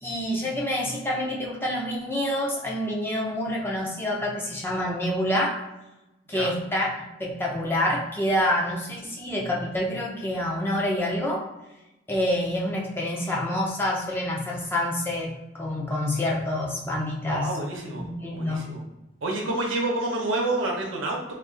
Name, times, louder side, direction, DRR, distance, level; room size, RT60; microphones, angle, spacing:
voice 1, 0.0-5.6 6.3-6.9 7.2-11.4 12.1-17.5 17.9-18.6, left 1 dB, 10° left, -3 dB, 0.4 m, -27 dB
voice 2, 17.3-18.0 18.3-18.8 19.2-21.3, right 2 dB, 90° right, -1 dB, 0.8 m, -28 dB
2.4 x 2.4 x 3.7 m, 0.98 s
head